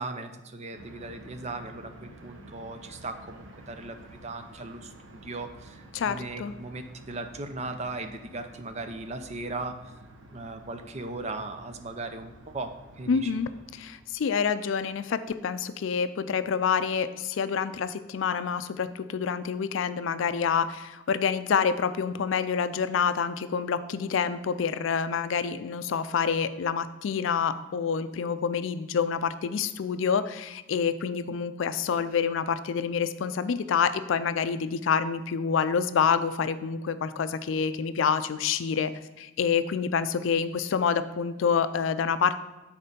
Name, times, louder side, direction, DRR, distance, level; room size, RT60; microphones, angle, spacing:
voice 1, 0.0-9.7 10.3-13.3, right 3 dB, 35° right, 7 dB, 0.5 m, -38 dB
sound 1, 0.7-14.1, right 1 dB, 80° right, 0.9 m, -50 dB
voice 2, 5.9-6.5 13.1-42.4, left 6 dB, 70° left, 12 dB, 0.4 m, -27 dB
6.5 x 4.3 x 5.3 m, 1.1 s
head